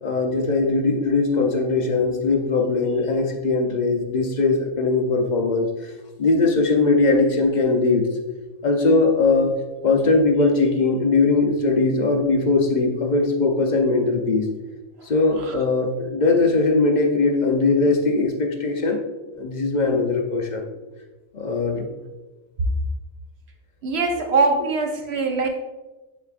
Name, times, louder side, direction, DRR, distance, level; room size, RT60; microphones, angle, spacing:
voice 1, 0.0-5.7 6.2-8.1 8.6-9.5 9.8-14.5 15.0-19.0 19.3-20.7 21.3-21.9 24.2-24.3 24.6-24.7, left 3 dB, 45° left, 2 dB, 0.7 m, -20 dB
voice 2, 23.8-25.5, right 3 dB, 55° right, 3 dB, 1.1 m, -22 dB
10.0 x 4.1 x 2.5 m, 1.2 s
omnidirectional pair, 1.4 m